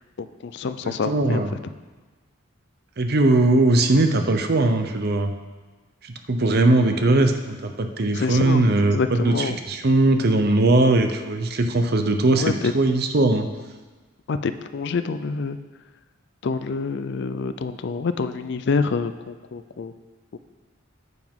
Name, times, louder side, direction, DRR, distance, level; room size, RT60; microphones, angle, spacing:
voice 1, 0.2-1.4 8.1-8.6 8.9-9.6 12.3-12.7 14.3-15.6 16.4-19.9 20.3-20.4, left 4 dB, 55° left, 11 dB, 0.4 m, -27 dB
voice 2, 0.8-1.5 3.0-5.3 6.0-13.5, right 2 dB, 50° right, 6 dB, 0.7 m, -20 dB
9.4 x 8.0 x 3.7 m, 1.3 s
head